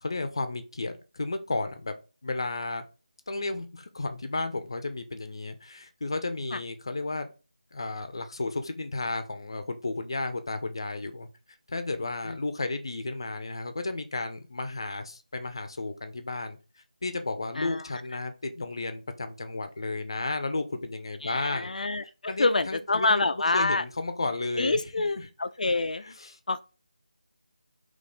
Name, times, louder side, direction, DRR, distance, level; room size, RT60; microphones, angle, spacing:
voice 1, 0.0-1.9 2.2-2.8 3.3-7.3 7.7-11.3 11.7-16.6 17.0-21.7 22.3-24.8 25.2-25.3 25.6-25.7 26.0-26.4, left 2 dB, 40° left, 0.6 m, -33 dB
voice 2, 21.2-23.8 24.6-26.0 26.5-26.6, left 3 dB, 85° left, 0.4 m, -27 dB
3.6 x 3.0 x 4.2 m
figure-of-eight pair, 180°, 4 cm